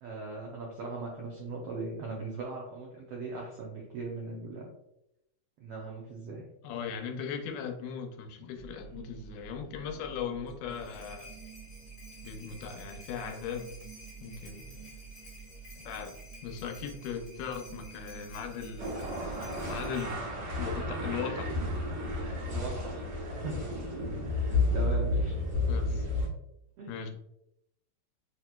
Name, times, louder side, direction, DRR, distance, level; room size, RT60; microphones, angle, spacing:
voice 1, 0.0-4.7 5.6-6.4 22.4-23.1 23.3-23.7 24.3-25.4 26.8-27.1, right 3 dB, 85° right, -2 dB, 1.4 m, -39 dB
voice 2, 6.6-11.3 12.2-13.8 14.2-15.0 15.8-16.2 16.4-20.3 20.6-21.6 25.7-26.1 26.9-27.1, left 7 dB, 85° left, 5 dB, 2.2 m, -39 dB
sound 1, 8.5-21.1, right 6 dB, 65° right, 1.5 m, -49 dB
sound 2, 10.5-20.1, left 1 dB, 60° left, 0.5 m, -53 dB
sound 3, 18.8-26.3, left 2 dB, 50° right, 1.7 m, -31 dB
6.3 x 2.9 x 2.2 m, 0.81 s
omnidirectional pair, 3.7 m